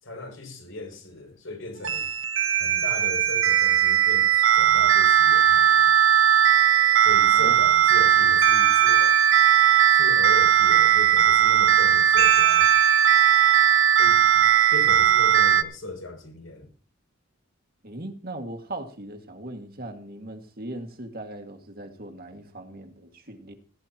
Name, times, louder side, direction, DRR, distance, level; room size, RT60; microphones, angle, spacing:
voice 1, 0.0-2.1 2.6-5.9 7.0-9.1 9.9-12.7 14.0-16.7, left 2 dB, 75° left, 6.8 m, -38 dB
sound 1, 1.8-15.6, right 9 dB, 65° right, 1.0 m, -18 dB
voice 2, 17.8-23.5, right 1 dB, 45° right, 2.1 m, -39 dB
19.0 x 15.0 x 3.0 m
head